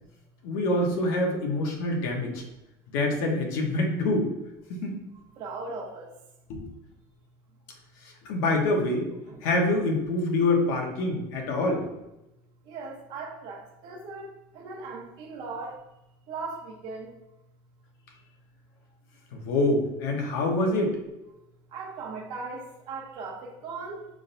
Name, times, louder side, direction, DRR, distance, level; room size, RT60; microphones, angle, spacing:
voice 1, 0.4-2.4 2.9-4.3 4.7-5.0 6.5-6.7 8.0-9.1 9.4-11.8 19.3-21.0, left 2 dB, 80° left, 1 dB, 1.1 m, -26 dB
voice 2, 5.4-6.0 9.3-9.4 12.7-14.3 14.5-15.8 16.3-17.1 21.7-24.1, right 4 dB, 50° right, -1 dB, 0.9 m, -38 dB
5.4 x 3.7 x 2.7 m, 0.91 s
cardioid pair, 165°, 10 cm